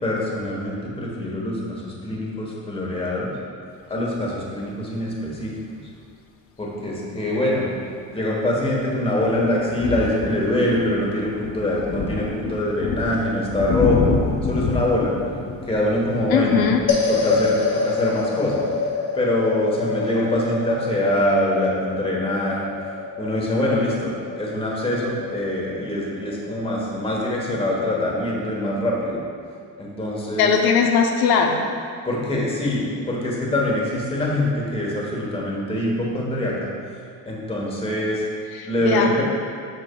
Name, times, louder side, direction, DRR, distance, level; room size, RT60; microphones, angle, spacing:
voice 1, 0.0-3.3 3.9-5.5 6.6-7.7 8.1-14.1 14.4-15.1 15.7-16.6 17.1-18.7 19.1-22.7 23.2-29.2 29.8-30.5 32.1-36.7 37.3-38.2 38.6-39.2, left 1 dB, 15° left, -3 dB, 1.1 m, -24 dB
sound 1, 9.1-17.6, left 4 dB, 40° left, 0.5 m, -28 dB
voice 2, 16.3-16.8 30.4-31.6 38.5-39.2, left 6 dB, 80° left, 2 dB, 0.6 m, -19 dB
sound 2, 16.9-27.3, left 4 dB, 55° left, 1.1 m, -27 dB
7.9 x 5.7 x 2.3 m, 2.3 s
cardioid pair, 130°, 37 cm